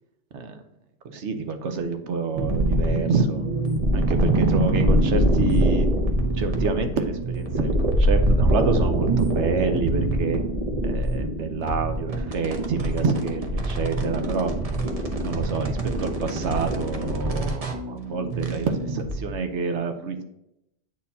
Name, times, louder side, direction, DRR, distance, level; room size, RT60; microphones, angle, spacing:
voice 1, 1.0-3.5 3.9-5.9 6.3-10.4 10.8-14.5 15.2-20.2, right 4 dB, 75° right, 7 dB, 1.1 m, -28 dB
sound 1, 2.3-19.3, right 1 dB, 35° right, 0.8 m, -24 dB
8.5 x 4.2 x 2.8 m, 0.84 s
omnidirectional pair, 1.2 m